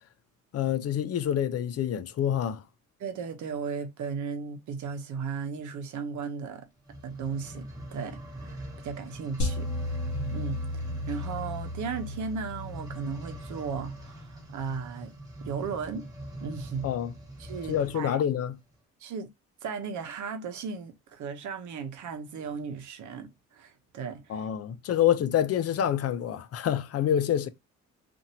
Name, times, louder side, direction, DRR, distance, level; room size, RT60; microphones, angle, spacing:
voice 1, 0.5-2.6 16.8-17.1 17.7-18.6 24.3-27.5, left 10 dB, 55° left, 0.5 m, -27 dB
voice 2, 3.0-6.7 7.0-10.0 10.3-15.1 15.4-16.1 16.4-16.9 17.4-18.2 19.0-19.3 19.6-24.5, right 6 dB, 75° right, 0.8 m, -36 dB
sound 1, 6.8-18.1 18.7-18.8, right 1 dB, 10° right, 1.2 m, -43 dB
sound 2, 9.4-13.7, left 1 dB, 70° left, 0.9 m, -34 dB
2.8 x 2.6 x 2.7 m
cardioid pair, 90°, 30 cm